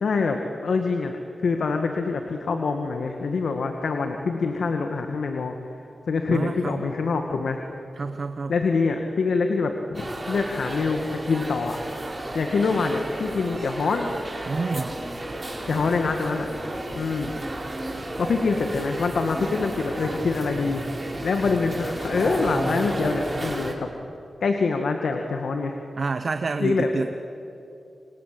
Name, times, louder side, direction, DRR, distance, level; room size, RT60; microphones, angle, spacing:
voice 1, 0.0-1.1 1.4-5.5 6.1-7.6 8.5-11.8 12.3-14.1 15.7-16.5 17.0-17.3 18.2-20.8 21.2-23.9 24.4-25.8 26.6-26.9, left 4 dB, 80° left, 4 dB, 2.0 m, -25 dB
voice 2, 6.3-6.8 8.0-8.5 14.4-14.9 26.0-27.1, right 4 dB, 60° right, 8 dB, 1.1 m, -28 dB
sound 1, 9.9-23.7, right 1 dB, 30° right, 4.7 m, -32 dB
27.5 x 27.0 x 7.8 m, 2.7 s
cardioid pair, 45°, 0 cm